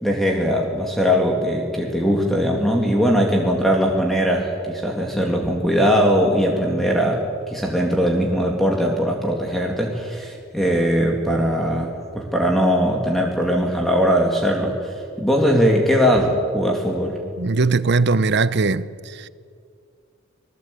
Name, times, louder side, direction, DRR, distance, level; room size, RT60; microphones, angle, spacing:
voice 1, 0.0-17.2, equal, ahead, 2.2 m, -20 dB
voice 2, 17.4-19.3, right 3 dB, 55° right, 0.8 m, -20 dB
26.0 x 18.5 x 8.4 m
head